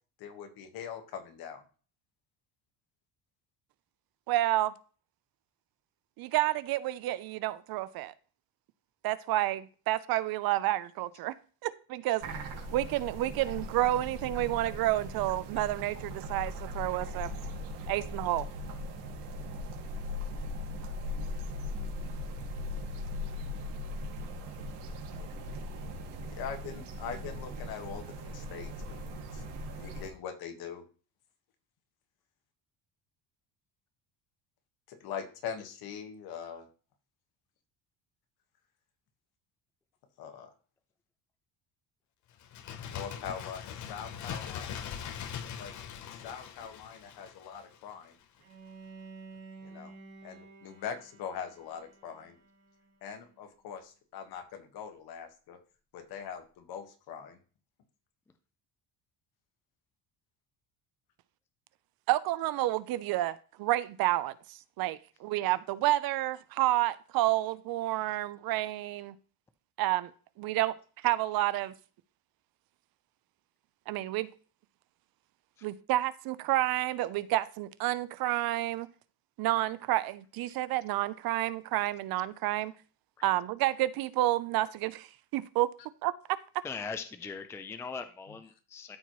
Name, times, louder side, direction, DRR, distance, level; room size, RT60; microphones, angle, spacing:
voice 1, 0.2-1.6 26.2-29.1 29.3-29.4 29.7-30.8 34.9-36.7 40.2-40.5 42.9-44.9 45.6-45.7 46.2-48.2 49.6-49.9 50.2-52.4 53.0-55.6 55.9-57.4, left 7 dB, 65° left, 1.5 m, -42 dB
voice 2, 4.3-4.7 6.2-8.1 9.0-11.3 11.6-12.2 12.7-17.3 17.9-18.5 62.1-69.1 69.8-70.1 70.4-70.7 71.0-71.7 73.9-74.3 75.6-78.9 79.4-82.7 83.2-85.1 85.3-85.7 86.0-86.1, right 15 dB, 60° right, 0.6 m, -30 dB
sound 1, 12.2-30.1, left 1 dB, 85° right, 2.3 m, -39 dB
Bird, 42.4-47.9 48.2-48.3, left 8 dB, 45° left, 0.8 m, -41 dB
Bowed string instrument, 48.4-53.4, right 4 dB, 40° right, 2.6 m, -52 dB
voice 3, 86.6-89.0, left 5 dB, 5° left, 0.4 m, -40 dB
13.0 x 4.4 x 3.1 m
cardioid pair, 150°, 40 cm